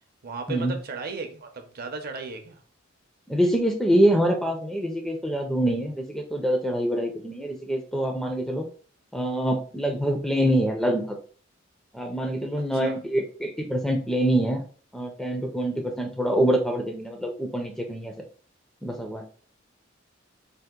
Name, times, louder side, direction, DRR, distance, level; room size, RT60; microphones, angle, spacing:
voice 1, 0.2-2.6 12.8-13.0, right 4 dB, 50° right, 6 dB, 0.5 m, -35 dB
voice 2, 3.3-8.6 9.1-11.2 11.9-14.6 14.9-18.1 18.8-19.2, right 1 dB, ahead, 3 dB, 0.4 m, -25 dB
2.7 x 2.4 x 3.6 m, 0.42 s
head